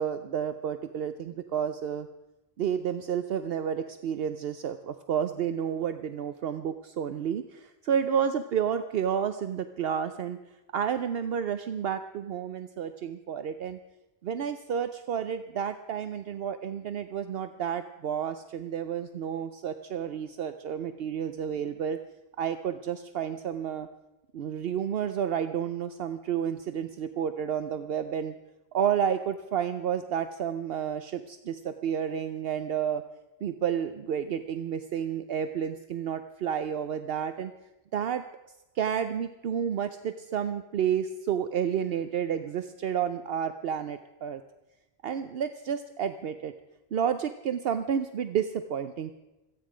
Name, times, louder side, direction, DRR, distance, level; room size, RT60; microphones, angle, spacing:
voice 1, 0.0-2.1 2.6-10.4 10.7-13.8 14.2-22.0 22.4-23.9 24.3-28.3 28.7-33.0 33.4-37.5 37.9-38.2 38.8-44.4 45.0-46.5 46.9-49.1, right 8 dB, 70° right, 10 dB, 0.9 m, -30 dB
26.0 x 9.5 x 5.0 m, 1.0 s
omnidirectional pair, 1.1 m